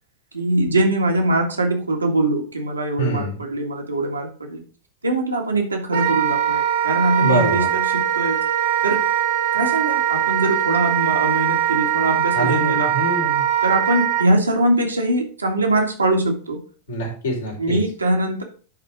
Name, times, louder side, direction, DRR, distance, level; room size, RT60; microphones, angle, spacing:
voice 1, 0.3-4.6 5.0-8.4 8.8-9.0 9.5-12.9 13.6-16.6 17.6-18.4, right 1 dB, 80° right, 1 dB, 2.0 m, -22 dB
voice 2, 3.0-3.4 7.2-7.7 12.3-13.4 16.9-17.8, right 1 dB, 65° left, -1 dB, 3.6 m, -24 dB
Wind instrument woodwind instrument, 5.9-14.3, right 10 dB, 60° right, 1.6 m, -21 dB
10.5 x 4.2 x 5.1 m, 0.39 s
figure-of-eight pair, 90°, 0 cm